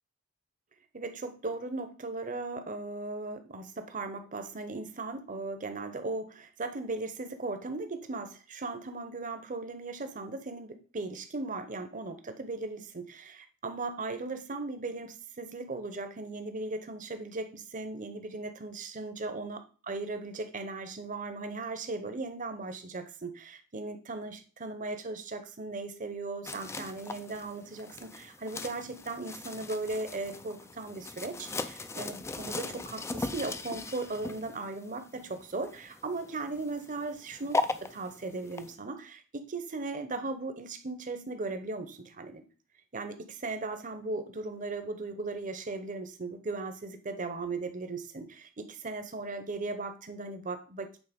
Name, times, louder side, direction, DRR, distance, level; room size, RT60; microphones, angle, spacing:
voice 1, 0.9-42.5 42.9-50.9, right 3 dB, 40° right, 8 dB, 0.8 m, -37 dB
sound 1, 26.4-38.7, left 3 dB, 15° left, 0.3 m, -39 dB
8.3 x 3.9 x 5.2 m, 0.38 s
head